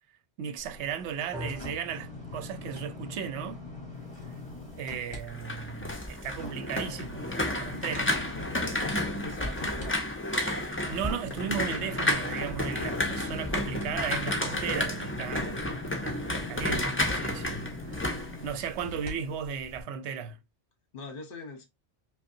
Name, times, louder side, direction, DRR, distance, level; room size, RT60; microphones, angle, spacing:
voice 1, 0.4-3.6 4.8-8.1 10.9-15.7 16.0-18.1 18.4-20.4, right 7 dB, 70° right, 0.9 m, -36 dB
sound 1, 0.6-5.2 5.6-19.1 19.6-19.7, left 3 dB, 30° left, 1.3 m, -43 dB
sound 2, 1.3-9.6, left 1 dB, 5° right, 1.3 m, -49 dB
sound 3, 5.1-19.1 19.4-19.8, left 1 dB, 15° left, 0.6 m, -31 dB
voice 2, 8.8-10.0 20.9-21.6, left 3 dB, 50° left, 1.0 m, -42 dB
5.2 x 2.3 x 2.6 m
omnidirectional pair, 1.2 m